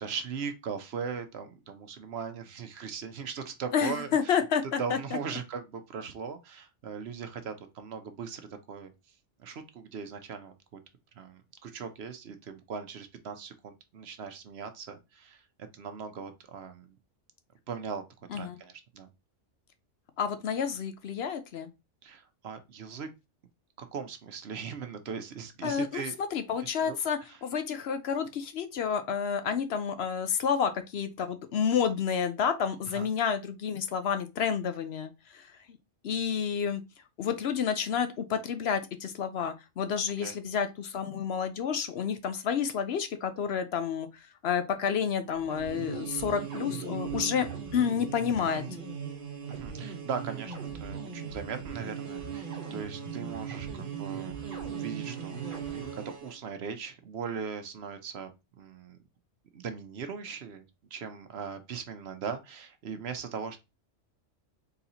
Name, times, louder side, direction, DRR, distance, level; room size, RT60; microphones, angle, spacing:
voice 1, 0.0-4.4 4.8-8.9 9.4-10.5 11.2-15.4 15.7-17.0 17.7-18.0 18.3-19.1 22.0-23.1 23.8-26.1 26.6-27.0 27.3-27.4 32.9-33.1 40.2-40.3 49.5-54.4 54.7-58.3 58.6-59.0 59.5-63.6, right 6 dB, 65° right, 0.9 m, -39 dB
voice 2, 3.7-5.0 18.3-18.6 20.2-21.7 25.6-35.8 36.0-36.8 37.2-47.5 47.7-48.6, left 7 dB, 65° left, 0.8 m, -30 dB
sound 1, 45.3-56.4, right 7 dB, 45° right, 1.3 m, -38 dB
4.0 x 4.0 x 2.8 m
omnidirectional pair, 1.3 m